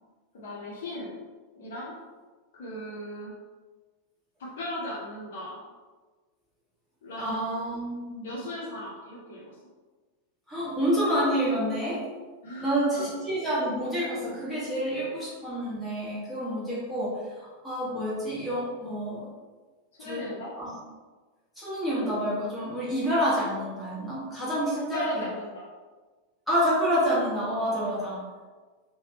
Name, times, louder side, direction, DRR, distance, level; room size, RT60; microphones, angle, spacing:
voice 1, 0.3-1.1 1.5-1.9 2.5-3.3 4.4-5.6 7.0-7.6 8.2-9.4 12.4-13.0 19.9-20.5 24.9-25.7 27.8-28.0, left 1 dB, 60° left, -5 dB, 0.7 m, -37 dB
voice 2, 7.2-8.3 10.5-12.0 12.6-19.3 20.0-20.2 20.6-20.7 21.6-25.3 26.5-28.2, equal, ahead, -10 dB, 1.3 m, -28 dB
3.2 x 2.2 x 2.8 m, 1.3 s
figure-of-eight pair, 90°, 0 cm